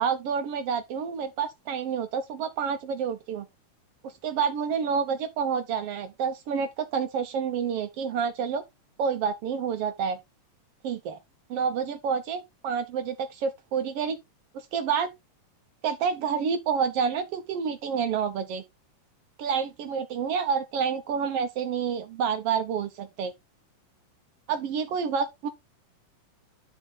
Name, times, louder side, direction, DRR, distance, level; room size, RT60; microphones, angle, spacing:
voice 1, 0.0-3.5 4.0-8.6 9.0-10.2 10.8-11.2 11.5-14.2 14.5-15.1 15.8-18.6 19.4-23.3 24.5-25.5, right 6 dB, 90° right, 1.3 m, -28 dB
11.5 x 4.5 x 4.0 m
omnidirectional pair, 3.9 m